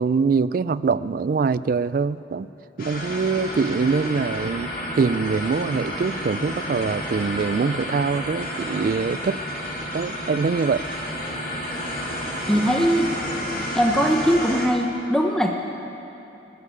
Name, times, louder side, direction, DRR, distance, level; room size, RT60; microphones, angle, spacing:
voice 1, 0.0-2.5 2.8-4.7 5.0-9.4 9.9-10.8, right 5 dB, 50° right, 16 dB, 0.3 m, -23 dB
sound 1, 2.8-14.7, equal, 50° left, 2.2 m, -31 dB
voice 2, 12.5-13.1 13.7-15.5, equal, 5° left, 1 dB, 0.7 m, -20 dB
24.5 x 11.0 x 5.0 m, 2.9 s
head